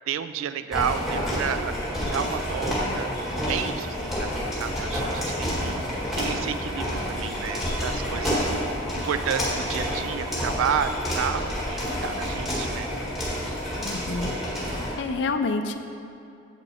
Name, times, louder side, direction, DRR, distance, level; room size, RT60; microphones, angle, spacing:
voice 1, 0.1-1.8 2.1-5.9 6.2-8.5 8.9-12.9, right 7 dB, 80° right, 12 dB, 0.3 m, -31 dB
sound 1, 0.7-14.9, equal, ahead, 1.5 m, -29 dB
sound 2, 10.5-13.8, left 1 dB, 35° left, 0.7 m, -43 dB
voice 2, 13.8-14.3 15.0-15.8, left 3 dB, 60° left, 7 dB, 0.4 m, -27 dB
7.5 x 6.0 x 3.5 m, 2.6 s
head